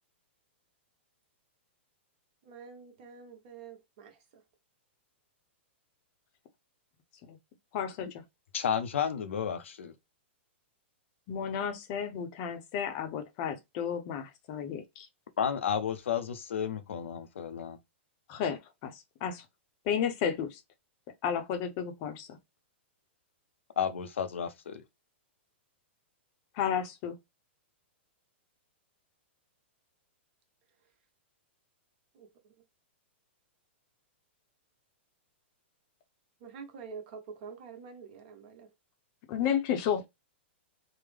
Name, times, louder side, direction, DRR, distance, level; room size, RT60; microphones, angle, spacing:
voice 1, 2.4-4.2 32.1-32.3 36.4-38.7, right 5 dB, 50° right, 1.1 m, -47 dB
voice 2, 7.7-8.1 11.3-15.1 18.3-19.4 19.8-20.6 21.2-22.4 26.5-27.1 39.3-40.1, left 8 dB, 40° left, 0.7 m, -32 dB
voice 3, 8.5-9.9 15.4-17.8 23.8-24.8, left 8 dB, 85° left, 0.6 m, -32 dB
3.7 x 2.1 x 3.3 m
hypercardioid pair, 150°, 7 cm